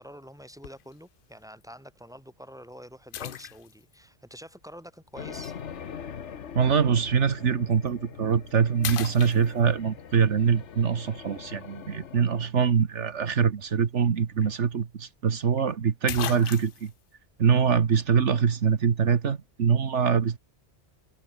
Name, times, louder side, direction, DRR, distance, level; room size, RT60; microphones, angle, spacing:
voice 1, 0.0-5.6, equal, 5° right, 7.7 m, -46 dB
sound 1, 0.6-0.9 1.6-1.7 3.1-4.0 5.4-5.5 7.7-7.9 8.3-8.5 8.8-9.9 14.0-14.1 14.4-14.5 15.6-15.7 16.1-16.9, left 10 dB, 55° left, 0.7 m, -36 dB
sound 2, 5.2-12.5, left 7 dB, 80° left, 1.5 m, -43 dB
voice 2, 6.5-16.9 17.4-20.4, right 6 dB, 80° right, 1.6 m, -24 dB
omnidirectional pair, 1.2 m